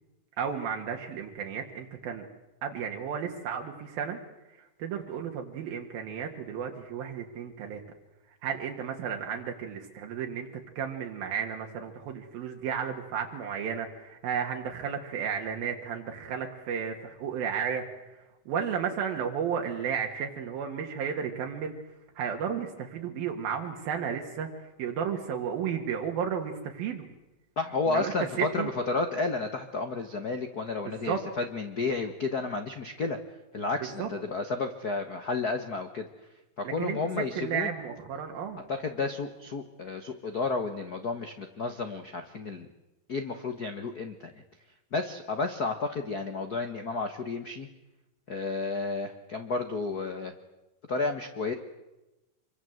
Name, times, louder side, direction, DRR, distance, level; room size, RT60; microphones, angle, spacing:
voice 1, 0.4-2.3 2.6-4.2 4.5-7.8 8.4-21.7 22.2-27.1 27.9-28.1 28.4-28.7 30.9-31.2 34.0-34.1 36.7-38.6, right 7 dB, 80° right, 2 dB, 3.6 m, -33 dB
voice 2, 27.6-33.2 33.5-36.1 36.6-37.7 38.7-42.7 43.1-44.4 44.9-47.7 48.3-50.3 50.9-51.5, left 3 dB, 85° left, 7 dB, 0.8 m, -32 dB
26.0 x 23.5 x 7.9 m, 1.0 s
omnidirectional pair, 4.1 m